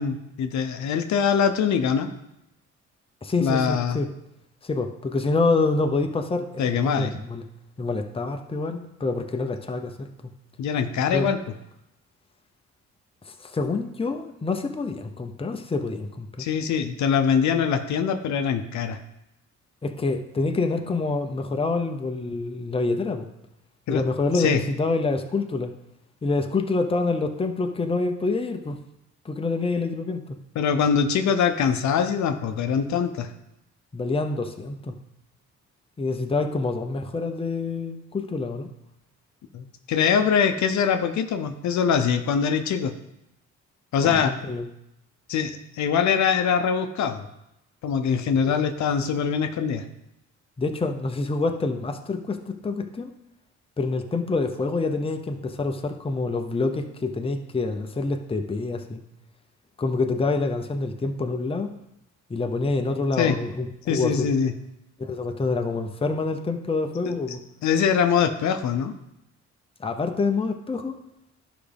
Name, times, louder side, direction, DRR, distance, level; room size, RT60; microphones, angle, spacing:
voice 1, 0.0-2.1 3.4-4.0 6.6-7.1 10.6-11.4 16.4-19.0 23.9-24.0 24.3-24.6 30.5-33.3 39.5-42.9 43.9-44.3 45.3-47.3 47.8-49.8 63.2-63.4 63.9-64.5 67.6-68.9, left 7 dB, 70° left, 8 dB, 0.7 m, -23 dB
voice 2, 3.2-4.1 4.6-7.4 7.8-10.3 11.1-11.3 13.3-16.5 19.8-23.3 23.9-25.7 26.2-28.8 29.2-30.4 33.9-35.0 36.0-38.7 44.0-44.7 50.6-53.1 53.8-59.0 59.8-61.7 62.3-64.3 65.0-67.4 69.8-70.9, left 3 dB, 20° left, 5 dB, 0.7 m, -27 dB
11.5 x 5.0 x 3.5 m, 0.85 s
cardioid pair, 90°, 30 cm